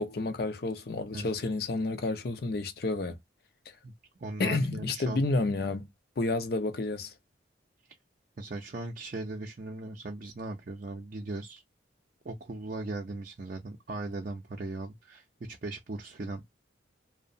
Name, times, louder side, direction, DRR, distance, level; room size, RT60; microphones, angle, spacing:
voice 1, 0.0-3.2 4.4-5.9 6.2-7.1, left 2 dB, 55° left, 0.5 m, -30 dB
voice 2, 4.2-5.2 8.4-11.6 12.2-16.4, right 2 dB, 45° right, 0.5 m, -38 dB
2.8 x 2.1 x 2.5 m
head